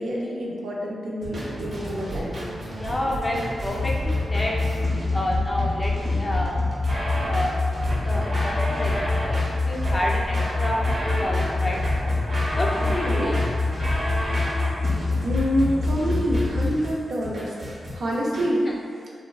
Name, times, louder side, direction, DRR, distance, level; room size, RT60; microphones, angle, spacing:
voice 1, 0.0-2.3 12.8-13.3 14.6-14.7 15.2-17.5 17.9-18.7, equal, 85° right, -4 dB, 0.5 m, -27 dB
sound 1, 1.2-18.5, equal, 45° right, 0.6 m, -31 dB
voice 2, 2.7-4.6 5.1-6.6 7.3-7.6 8.0-9.0 9.2-12.1 12.6-13.8 18.7-18.8, left 1 dB, 20° left, -3 dB, 0.3 m, -29 dB
sound 2, 3.7-16.7, left 3 dB, 80° left, 0.5 m, -26 dB
3.3 x 2.1 x 2.3 m, 2.1 s
wide cardioid pair, 155°, 0 cm